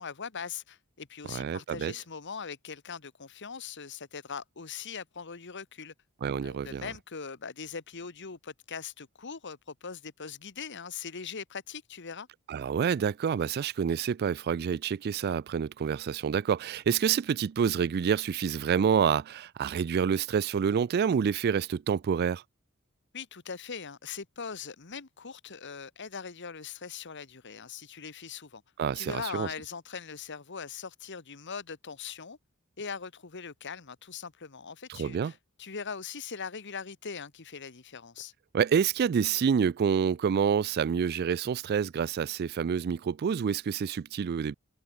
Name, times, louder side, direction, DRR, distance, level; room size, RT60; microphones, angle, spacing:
voice 1, 0.0-5.9 6.4-12.3 23.1-28.6 28.9-32.4 32.8-38.3, left 6 dB, 55° left, 1.3 m, -41 dB
voice 2, 1.3-1.9 6.2-6.9 12.5-22.4 28.8-29.5 34.9-35.3 38.5-44.6, right 7 dB, 45° right, 0.3 m, -28 dB
head